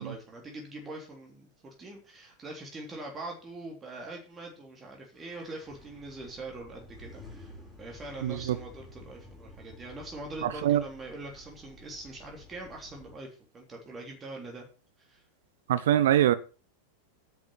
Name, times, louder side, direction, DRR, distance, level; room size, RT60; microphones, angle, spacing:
voice 1, 0.0-7.5 7.8-13.3 13.5-14.6 15.0-15.2, right 2 dB, 20° right, 0 dB, 3.4 m, -43 dB
sound 1, 5.1-13.1, left 1 dB, ahead, 5.3 m, -51 dB
voice 2, 8.2-8.6 10.4-10.8 15.7-16.3, right 11 dB, 55° right, 14 dB, 1.0 m, -23 dB
10.5 x 6.6 x 6.9 m, 0.35 s
figure-of-eight pair, 90°, 0 cm